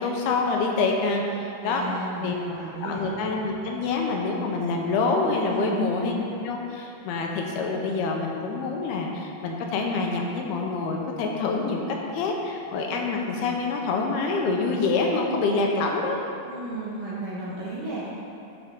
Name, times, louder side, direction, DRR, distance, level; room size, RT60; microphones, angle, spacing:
voice 1, 0.0-1.8 2.2-2.3 2.8-6.2 6.4-11.8 12.1-16.3, left 3 dB, 75° left, 0 dB, 2.6 m, -26 dB
voice 2, 1.6-3.1 5.5-5.9 16.5-18.1, right 2 dB, 70° right, -7 dB, 2.2 m, -34 dB
12.0 x 6.6 x 3.7 m, 2.7 s
omnidirectional pair, 5.0 m